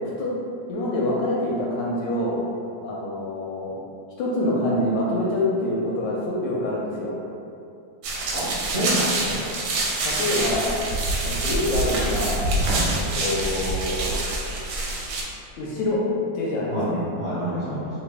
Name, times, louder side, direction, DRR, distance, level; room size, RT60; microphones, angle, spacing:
voice 1, 0.7-2.4 2.8-3.8 4.2-7.1 9.2-9.3 10.0-10.7 11.2-12.4 12.9-14.1 15.6-16.0 16.3-17.0, left 1 dB, 75° left, -4 dB, 1.2 m, -26 dB
sound 1, 8.0-15.2, right 2 dB, 75° right, 1.3 m, -26 dB
voice 2, 8.3-9.4 12.6-12.9 16.7-17.9, equal, 55° right, -12 dB, 0.8 m, -28 dB
3.1 x 2.5 x 3.3 m, 2.6 s
omnidirectional pair, 2.3 m